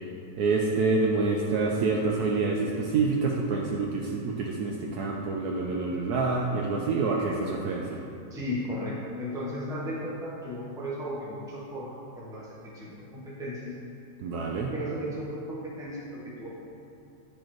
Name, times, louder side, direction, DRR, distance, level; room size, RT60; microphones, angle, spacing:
voice 1, 0.4-8.0 14.2-14.7, right 3 dB, 70° right, -1 dB, 1.0 m, -27 dB
voice 2, 6.7-7.4 8.3-13.7 14.7-16.5, equal, 5° right, -6 dB, 0.7 m, -36 dB
9.8 x 4.5 x 3.1 m, 2.7 s
omnidirectional pair, 2.0 m